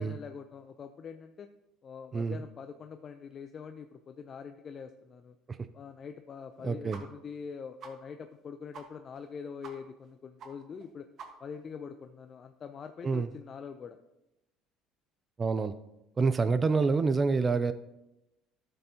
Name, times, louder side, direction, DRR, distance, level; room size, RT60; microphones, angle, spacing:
voice 1, 0.0-1.5 1.8-5.4 5.7-11.1 11.4-14.0, left 6 dB, 45° left, 7 dB, 0.5 m, -44 dB
voice 2, 6.6-7.0 13.0-13.3 15.4-15.7 16.2-17.7, right 4 dB, 30° right, 12 dB, 0.4 m, -27 dB
sound 1, 6.9-7.0 7.3-7.4 7.8-7.9 8.3-8.4 8.7-8.8 9.1-9.3 9.6-9.7 10.0-10.1 10.4-10.5 10.8-10.9 11.2-11.6, right 6 dB, 55° right, 1.3 m, -46 dB
12.0 x 6.8 x 2.8 m, 0.91 s
supercardioid pair, 85°, 0 cm